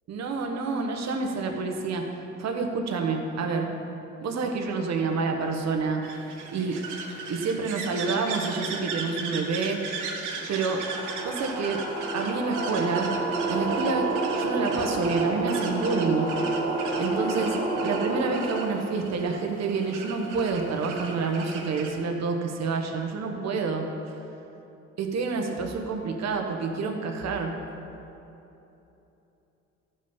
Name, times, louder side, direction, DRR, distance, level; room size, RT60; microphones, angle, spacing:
voice 1, 0.1-2.1 2.4-3.7 4.2-6.2 6.5-6.8 7.3-9.8 10.5-10.8 11.2-11.8 12.1-13.1 13.5-16.3 17.0-23.9 25.0-27.6, right 4 dB, 60° right, 3 dB, 1.2 m, -28 dB
sound 1, 6.0-21.9, right 4 dB, 85° right, 1.3 m, -37 dB
sound 2, 10.5-18.9, right 2 dB, 15° right, 1.4 m, -29 dB
13.5 x 5.5 x 5.5 m, 2.9 s
cardioid pair, 90°, 30 cm